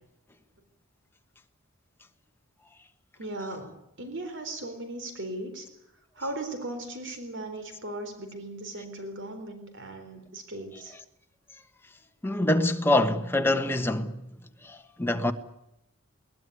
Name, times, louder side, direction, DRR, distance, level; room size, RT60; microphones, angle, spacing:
voice 1, 3.2-5.7 6.1-11.0, right 1 dB, 55° right, 4.0 m, -37 dB
voice 2, 12.2-14.2 14.6-15.3, left 1 dB, 10° left, 1.4 m, -25 dB
21.5 x 19.0 x 9.8 m
head